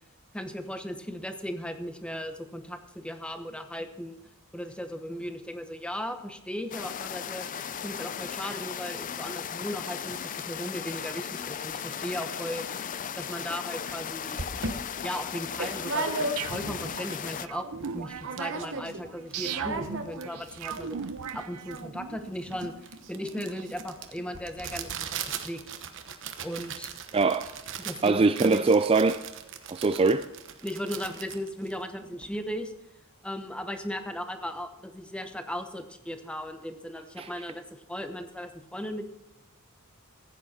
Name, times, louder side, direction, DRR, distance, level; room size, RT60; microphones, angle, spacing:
voice 1, 0.3-4.2 4.5-7.5 7.8-12.6 13.1-14.5 15.0-16.1 16.5-21.0 21.3-25.6 26.4-26.9 27.8-28.6 30.6-32.7 33.2-39.0, equal, 5° left, 7 dB, 0.9 m, -37 dB
sound 1, 6.7-17.5, left 8 dB, 35° left, 0.4 m, -36 dB
sound 2, 13.9-14.0 14.4-16.8 17.2-17.3 17.4-17.9 18.2-19.0 19.3-32.4, right 4 dB, 60° right, 1.1 m, -37 dB
sound 3, 16.4-22.2, right 7 dB, 85° right, 0.7 m, -38 dB
voice 2, 27.1-27.4 28.0-29.2 29.7-30.3 37.2-37.3, right 3 dB, 25° right, 10 dB, 0.3 m, -22 dB
15.0 x 9.2 x 4.3 m, 0.93 s
head